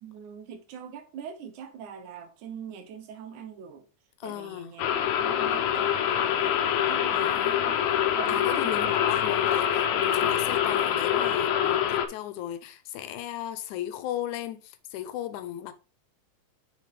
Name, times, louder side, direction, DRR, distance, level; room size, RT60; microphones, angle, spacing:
voice 1, 0.0-3.9 4.2-4.8 5.1-6.6 6.9-7.8 8.1-8.9 9.2-9.3 10.2-10.7, right 7 dB, 90° right, 2.5 m, -43 dB
voice 2, 4.2-4.7 7.1-7.6 8.3-15.7, left 12 dB, 90° left, 2.2 m, -35 dB
sound 1, 4.8-12.1, left 9 dB, 75° left, 2.0 m, -25 dB
6.7 x 5.8 x 3.4 m
omnidirectional pair, 3.4 m